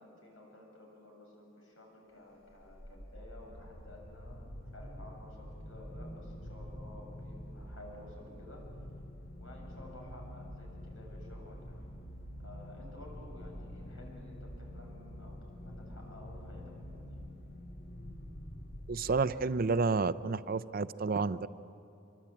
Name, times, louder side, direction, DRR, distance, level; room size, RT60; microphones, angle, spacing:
voice 1, 0.0-8.6 9.4-11.9 12.4-17.3, left 1 dB, 90° left, 0 dB, 7.6 m, -53 dB
sound 1, 2.5-19.8, equal, 50° left, 2.3 m, -47 dB
voice 2, 18.9-21.5, right 4 dB, 50° right, 14 dB, 0.6 m, -30 dB
26.0 x 24.0 x 8.6 m, 2.7 s
head